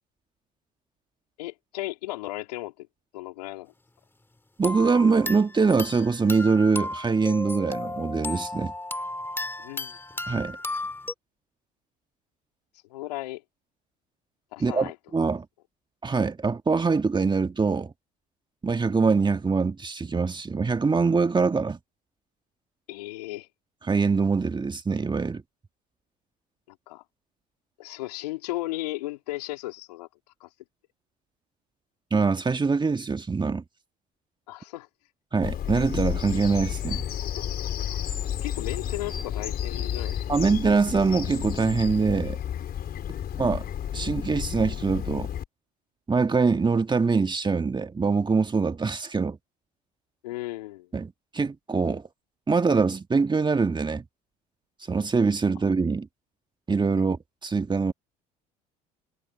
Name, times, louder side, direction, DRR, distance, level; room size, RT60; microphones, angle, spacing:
voice 1, 1.4-2.9 3.1-3.7 9.6-10.0 12.9-13.4 14.5-14.9 22.9-23.5 26.7-27.0 27.8-30.1 30.4-30.5 34.5-34.9 37.9-38.0 38.4-40.6 43.2-43.3 50.2-50.9 57.0-57.1, left 18 dB, 85° left, 3.0 m, -35 dB
sound 1, 4.6-11.1, left 2 dB, 10° left, 2.3 m, -34 dB
voice 2, 4.6-8.7 10.3-10.6 14.6-15.4 16.0-17.9 18.6-21.8 23.8-25.4 32.1-33.6 35.3-37.0 40.3-42.4 43.4-43.6 43.9-45.3 46.1-49.4 50.9-52.0 52.5-54.0 54.9-56.1 56.7-57.9, right 4 dB, 20° right, 1.7 m, -24 dB
Bird vocalization bird call bird song, 35.4-45.4, left 10 dB, 50° left, 4.2 m, -31 dB
hypercardioid pair, 65°, 20 cm